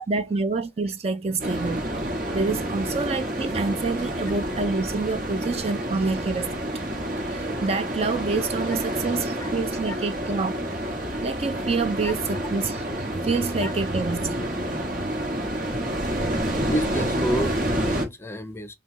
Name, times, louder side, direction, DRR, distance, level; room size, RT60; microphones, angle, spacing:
voice 1, 0.0-1.9 2.3-6.7 7.3-10.6 11.2-14.3, right 3 dB, 35° right, 0.4 m, -27 dB
sound 1, 1.4-18.1, right 1 dB, 50° right, 1.3 m, -29 dB
voice 2, 16.6-18.7, equal, 15° left, 0.6 m, -32 dB
5.5 x 2.3 x 2.9 m
head